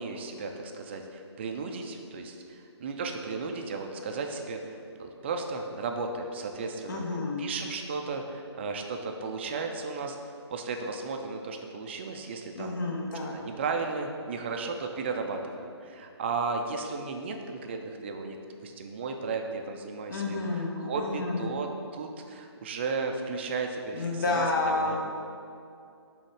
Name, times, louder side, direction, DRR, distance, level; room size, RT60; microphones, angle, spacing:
voice 1, 0.0-7.0 7.4-12.8 13.3-18.4 18.6-25.0, right 4 dB, 25° right, 4 dB, 0.4 m, -35 dB
voice 2, 6.9-7.4 12.6-13.3 20.1-21.5 23.9-25.0, left 2 dB, 45° left, -1 dB, 1.1 m, -30 dB
6.3 x 3.5 x 4.7 m, 2.5 s
figure-of-eight pair, 150°, 15 cm